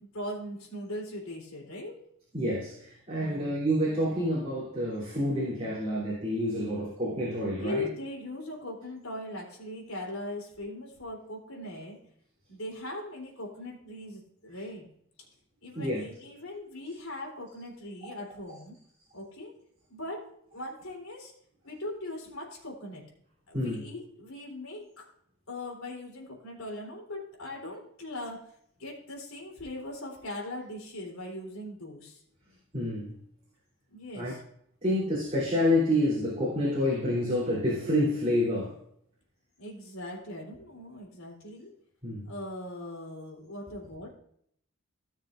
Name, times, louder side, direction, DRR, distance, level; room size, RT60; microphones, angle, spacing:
voice 1, 0.0-2.1 3.2-3.7 7.6-12.1 12.5-14.9 15.6-18.8 19.1-19.6 19.9-21.3 21.6-23.1 23.5-25.1 25.5-32.2 33.9-34.4 39.6-41.7 42.3-44.1, left 1 dB, 75° left, 3.6 m, -40 dB
voice 2, 2.3-7.9 15.7-16.0 18.0-18.2 23.5-23.8 32.7-33.2 34.1-34.4 34.8-38.8 42.0-42.3, left 1 dB, 30° right, 3.3 m, -28 dB
17.5 x 6.5 x 2.6 m
head